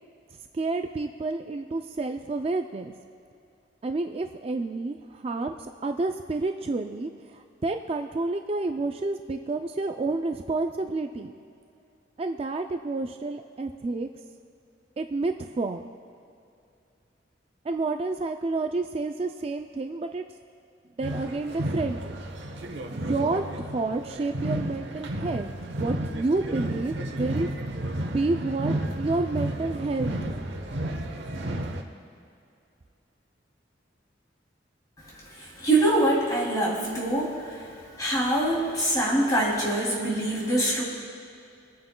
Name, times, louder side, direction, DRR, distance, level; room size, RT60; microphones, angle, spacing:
voice 1, 0.5-2.9 3.8-11.3 12.2-14.1 15.0-15.9 17.6-20.2 21.0-22.2 22.9-25.5 25.8-27.5 28.1-30.4, right 3 dB, 35° right, 6 dB, 0.4 m, -29 dB
sound 1, 21.0-31.8, right 1 dB, 80° right, 1.0 m, -32 dB
voice 2, 35.4-37.5 38.0-40.8, right 1 dB, 20° left, -4 dB, 2.9 m, -24 dB
27.5 x 9.3 x 2.2 m, 2.6 s
head